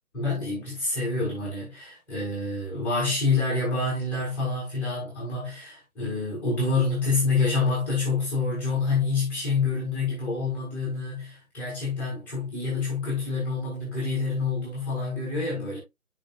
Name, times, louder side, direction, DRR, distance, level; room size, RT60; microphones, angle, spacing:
voice 1, 0.1-15.8, left 3 dB, 5° left, 4.6 m, -27 dB
10.5 x 6.2 x 2.6 m
figure-of-eight pair, 145°, 44 cm